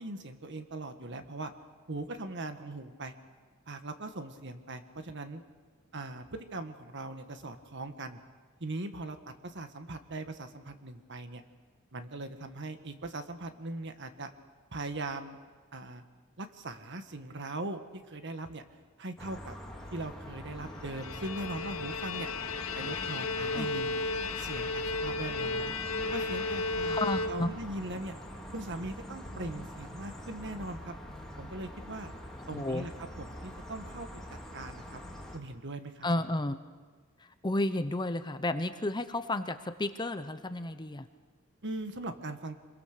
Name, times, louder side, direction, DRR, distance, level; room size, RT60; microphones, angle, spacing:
voice 1, 0.0-1.5 1.9-3.1 3.7-5.4 5.9-8.2 8.6-9.2 9.4-11.4 11.9-14.3 14.7-15.4 15.7-16.0 16.4-17.8 18.1-18.6 19.0-19.5 19.9-22.3 22.7-24.0 24.4-25.7 26.1-27.0 27.3-28.2 28.5-30.9 31.4-32.1 32.5-34.1 34.5-35.0 35.3-36.1 41.6-42.6, right 2 dB, 60° right, 8 dB, 1.6 m, -40 dB
sound 1, 19.2-35.4, equal, ahead, 3.0 m, -44 dB
Bowed string instrument, 20.8-27.8, left 3 dB, 80° left, 1.2 m, -34 dB
voice 2, 26.8-27.5 32.5-32.8 36.0-36.6 37.2-41.1, left 2 dB, 20° left, 10 dB, 0.8 m, -32 dB
26.0 x 22.0 x 6.7 m, 1.5 s
head